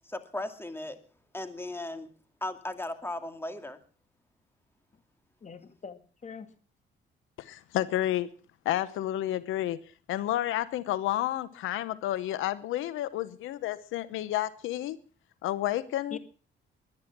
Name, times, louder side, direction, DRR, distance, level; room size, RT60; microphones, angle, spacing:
voice 1, 0.1-1.0 1.3-2.1 2.4-3.8, left 1 dB, 10° left, 8 dB, 2.4 m, -36 dB
voice 2, 5.4-6.5 16.1-16.2, left 5 dB, 35° left, 10 dB, 1.9 m, -44 dB
voice 3, 7.4-8.3 8.6-9.8 10.1-15.0 15.4-16.2, left 13 dB, 90° left, 16 dB, 0.9 m, -30 dB
22.0 x 9.8 x 6.0 m, 0.41 s
cardioid pair, 90°, 20 cm